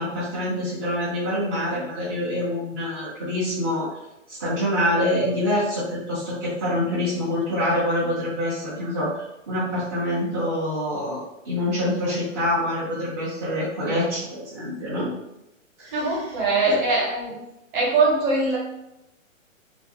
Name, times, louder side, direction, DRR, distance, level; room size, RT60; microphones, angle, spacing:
voice 1, 0.0-3.9 4.3-15.1 15.8-16.3 16.7-16.8, left 1 dB, 20° right, -10 dB, 0.4 m, -26 dB
voice 2, 15.9-17.3 17.7-18.6, right 3 dB, 40° right, -3 dB, 0.9 m, -22 dB
2.4 x 2.0 x 2.6 m, 0.89 s
hypercardioid pair, 135°, 40 cm